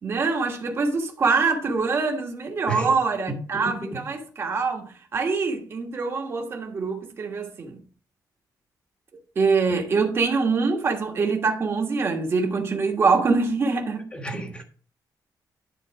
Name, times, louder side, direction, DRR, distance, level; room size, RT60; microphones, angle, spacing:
voice 1, 0.0-7.8 9.3-14.5, right 4 dB, 35° right, 1.4 m, -24 dB
voice 2, 14.1-14.6, right 3 dB, 15° left, 1.4 m, -31 dB
11.0 x 4.0 x 4.8 m
wide cardioid pair, 165°, 7 cm